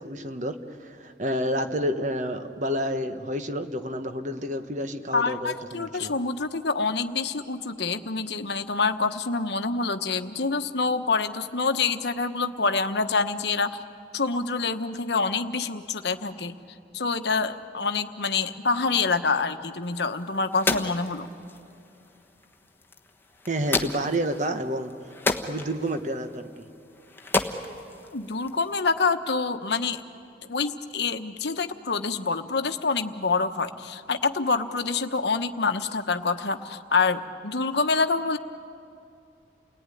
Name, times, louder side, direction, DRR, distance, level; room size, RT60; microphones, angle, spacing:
voice 1, 0.0-6.1 23.5-24.9 25.4-26.7, equal, 40° right, 8 dB, 1.2 m, -29 dB
voice 2, 5.1-13.8 14.1-16.5 16.9-21.3 28.1-30.0 30.5-38.4, left 4 dB, 70° left, 9 dB, 1.1 m, -26 dB
sound 1, 19.8-28.8, left 3 dB, 10° left, 1.1 m, -33 dB
29.5 x 18.5 x 9.9 m, 2.6 s
head